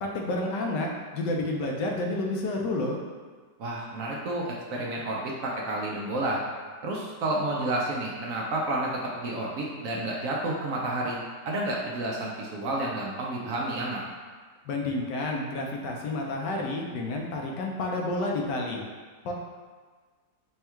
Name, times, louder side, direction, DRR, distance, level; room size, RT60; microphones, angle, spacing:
voice 1, 0.0-0.9 1.1-3.0 14.7-18.8 19.2-19.3, left 2 dB, 80° left, 0 dB, 1.2 m, -30 dB
voice 2, 3.6-6.4 6.8-11.2 11.4-14.0, right 1 dB, 70° right, -3 dB, 0.8 m, -30 dB
3.5 x 2.3 x 4.3 m, 1.5 s
omnidirectional pair, 1.9 m